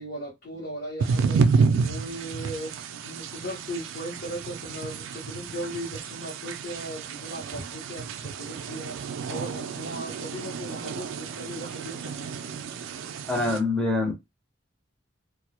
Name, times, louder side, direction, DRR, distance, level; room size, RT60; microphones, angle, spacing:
voice 1, 0.0-12.3, equal, 45° left, 0.7 m, -38 dB
sound 1, 1.0-13.6, right 5 dB, 80° right, 0.3 m, -30 dB
voice 2, 13.3-14.1, left 2 dB, 5° left, 0.5 m, -25 dB
2.2 x 2.0 x 2.8 m
head